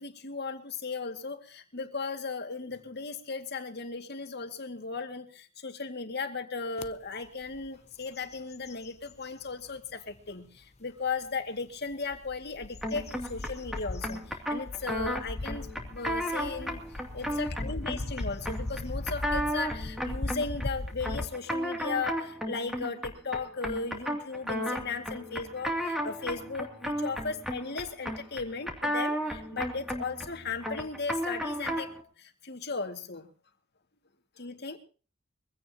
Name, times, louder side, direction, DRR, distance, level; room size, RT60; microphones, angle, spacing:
voice 1, 0.0-31.9 32.2-33.3 34.4-34.8, left 4 dB, 55° left, 6 dB, 2.2 m, -36 dB
sound 1, 6.8-6.9 7.4-7.7 8.0-9.5 10.1-10.2 11.9-21.3, left 2 dB, 35° left, 0.7 m, -38 dB
sound 2, 12.8-32.0, equal, ahead, 2.6 m, -34 dB
23.5 x 16.5 x 2.9 m, 0.37 s
head